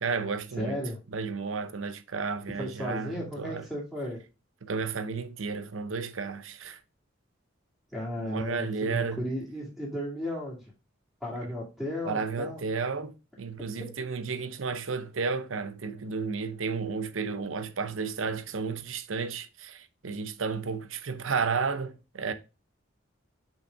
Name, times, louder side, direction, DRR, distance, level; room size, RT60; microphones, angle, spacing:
voice 1, 0.0-0.8 1.1-3.7 4.6-6.8 8.2-9.2 12.0-22.3, right 5 dB, 85° right, 0.7 m, -32 dB
voice 2, 0.6-1.0 2.6-4.2 7.9-10.7 11.2-12.6 13.7-13.9, left 1 dB, 5° left, 2.3 m, -34 dB
5.9 x 5.2 x 3.5 m
head